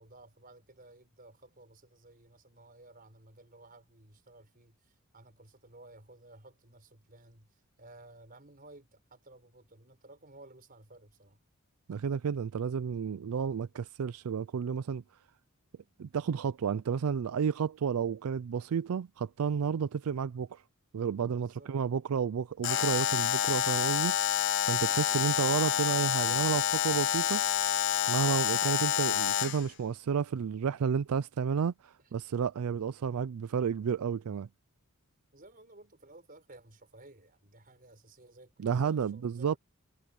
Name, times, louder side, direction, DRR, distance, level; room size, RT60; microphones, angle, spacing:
voice 1, 0.0-11.4 21.4-21.7 35.3-39.6, right 2 dB, 40° right, 5.4 m, -55 dB
voice 2, 11.9-15.0 16.0-20.6 20.9-24.3 24.7-27.5 28.1-34.5 38.6-39.6, right 7 dB, 80° right, 0.4 m, -31 dB
Alarm, 22.6-29.7, left 10 dB, 55° left, 0.5 m, -28 dB
head